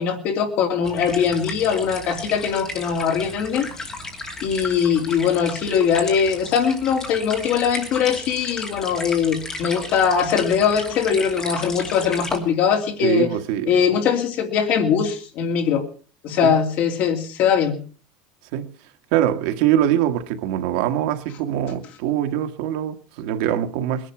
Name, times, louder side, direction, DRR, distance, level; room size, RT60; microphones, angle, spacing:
voice 1, 0.0-3.7 4.4-13.3 13.7-15.8 16.2-17.8, left 7 dB, 40° left, 2.9 m, -21 dB
sound 1, 0.8-12.4, left 2 dB, 15° left, 2.6 m, -34 dB
voice 2, 13.0-13.8 16.4-16.6 18.5-18.7 19.1-24.1, right 11 dB, 60° right, 1.6 m, -23 dB
20.5 x 11.0 x 6.0 m
cardioid pair, 175°, 5 cm